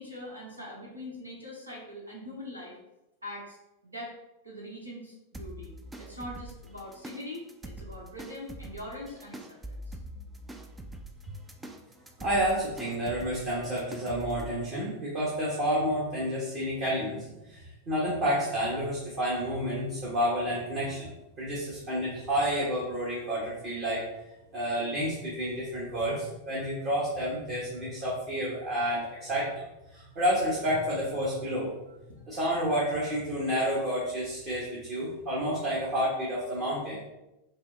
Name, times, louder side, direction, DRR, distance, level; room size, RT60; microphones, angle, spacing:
voice 1, 0.0-2.7 3.2-3.6 3.8-4.1 4.4-5.7 6.0-10.0, left 1 dB, 80° right, -3 dB, 0.9 m, -42 dB
sound 1, 5.3-14.5, right 1 dB, 10° right, 0.4 m, -44 dB
voice 2, 12.2-21.1 21.4-24.0 24.5-29.5 29.9-31.7 32.3-37.0, equal, 35° right, -6 dB, 1.1 m, -30 dB
5.3 x 2.0 x 3.2 m, 0.96 s
figure-of-eight pair, 90°, 0 cm